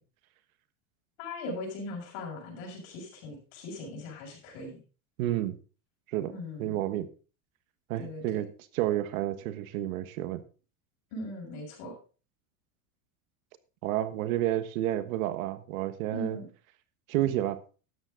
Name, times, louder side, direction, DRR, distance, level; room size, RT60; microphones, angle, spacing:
voice 1, 1.2-4.8 6.3-6.8 8.0-8.4 11.1-11.9 16.1-16.5, left 1 dB, 55° left, -1 dB, 6.9 m, -39 dB
voice 2, 5.2-5.6 6.1-6.3 6.6-7.1 7.9-8.5 8.7-10.4 13.8-16.4 17.1-17.6, right 13 dB, 70° right, 13 dB, 1.4 m, -30 dB
12.5 x 9.4 x 3.8 m, 0.36 s
supercardioid pair, 150°, 43 cm